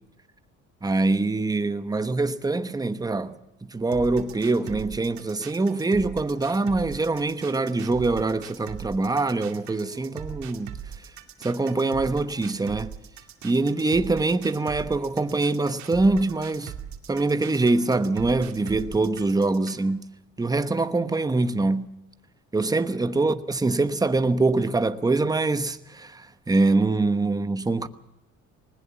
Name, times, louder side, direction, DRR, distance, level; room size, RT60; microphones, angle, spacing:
voice 1, 0.8-3.4 3.7-10.8 11.4-12.9 13.4-16.7 17.1-20.0 20.4-21.9 22.5-27.9, right 3 dB, 10° right, 1.0 m, -24 dB
sound 1, 3.9-19.9, right 8 dB, 65° right, 2.6 m, -40 dB
20.0 x 19.5 x 7.3 m
cardioid pair, 110°, 30 cm